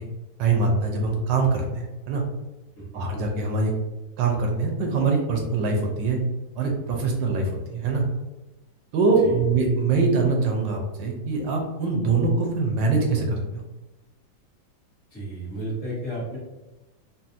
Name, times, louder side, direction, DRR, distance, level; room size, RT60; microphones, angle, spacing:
voice 1, 0.4-2.2 2.9-3.7 4.2-6.2 6.6-8.0 8.9-13.6, right 3 dB, 75° right, 1 dB, 1.2 m, -23 dB
voice 2, 2.8-3.1 9.2-9.4 15.1-16.4, right 1 dB, 45° left, -6 dB, 1.3 m, -33 dB
4.1 x 2.1 x 2.5 m, 1.0 s
omnidirectional pair, 2.1 m